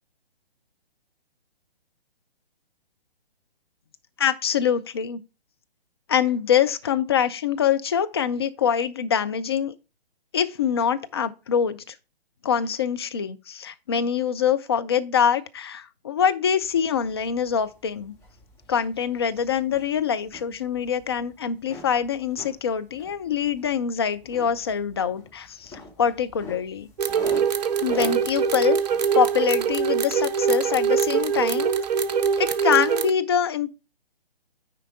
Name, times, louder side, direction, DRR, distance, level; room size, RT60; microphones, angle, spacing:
voice 1, 4.2-5.2 6.1-9.7 10.3-11.9 12.4-18.1 18.7-26.9 27.8-28.8 29.2-31.8 32.4-33.7, left 8 dB, 25° left, 0.4 m, -24 dB
sound 1, 16.6-33.1, left 1 dB, 10° left, 1.4 m, -46 dB
sound 2, 27.0-33.1, right 7 dB, 40° right, 0.8 m, -23 dB
9.5 x 4.5 x 3.7 m
figure-of-eight pair, 135°, 31 cm